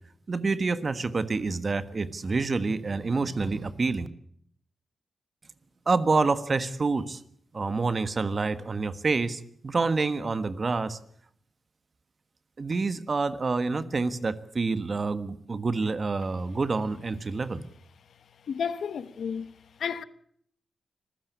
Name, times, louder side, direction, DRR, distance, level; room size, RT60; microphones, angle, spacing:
voice 1, 0.3-4.1 5.9-7.2 7.5-11.0 12.6-17.6, right 3 dB, 40° right, 1.4 m, -27 dB
voice 2, 18.5-19.5 19.8-20.0, left 7 dB, 80° left, 1.1 m, -31 dB
26.0 x 15.5 x 8.2 m
wide cardioid pair, 100°, 0 cm